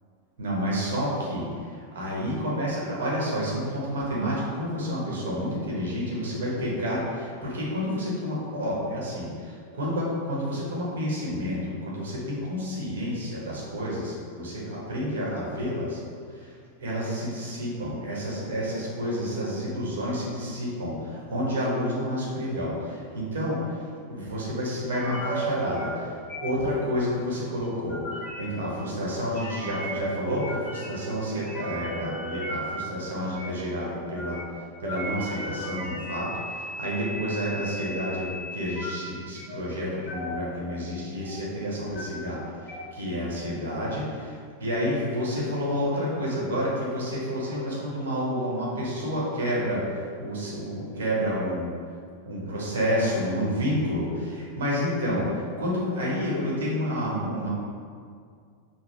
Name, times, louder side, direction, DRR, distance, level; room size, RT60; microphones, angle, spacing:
voice 1, 0.4-16.0 16.3-16.5 16.8-23.8 24.1-34.4 34.8-38.3 38.5-51.7 52.2-57.5, equal, 60° right, -5 dB, 1.3 m, -29 dB
sound 1, 24.9-25.4 25.8-26.0 26.3-26.7 27.6-28.4 29.3-30.0 30.4-31.0 31.3-32.7 33.4-33.5 34.1-34.4 34.8-38.9 39.4-39.6 40.1-40.4 40.7-41.5 41.8-42.0 42.7-42.8, equal, 20° left, 1.0 m, -36 dB
6.1 x 2.3 x 3.3 m, 2.2 s
figure-of-eight pair, 90°, 0 cm